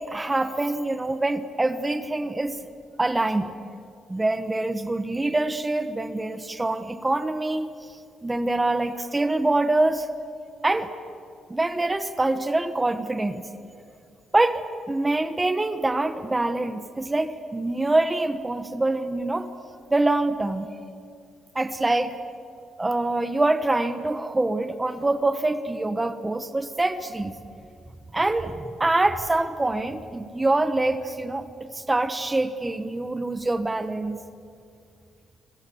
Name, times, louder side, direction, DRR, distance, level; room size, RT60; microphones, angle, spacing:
voice 1, 0.0-2.6 3.0-3.5 4.1-7.7 8.2-10.1 10.6-10.9 11.5-13.5 14.3-19.5 19.9-20.7 21.5-22.1 22.8-27.3 28.1-34.2, right 2 dB, 15° right, 10 dB, 1.3 m, -25 dB
27.0 x 26.5 x 7.1 m, 2.4 s
cardioid pair, 90°, 0 cm